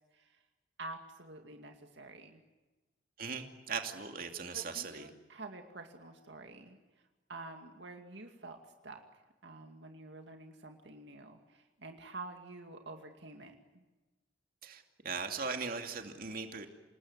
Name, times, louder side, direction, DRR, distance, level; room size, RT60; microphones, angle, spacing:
voice 1, 0.8-2.4 4.5-6.8 7.3-9.0 9.4-13.8, right 2 dB, 65° right, 4 dB, 2.3 m, -48 dB
voice 2, 3.2-5.1 14.6-16.7, right 5 dB, 50° right, 5 dB, 2.6 m, -39 dB
28.0 x 20.0 x 9.7 m, 1.2 s
head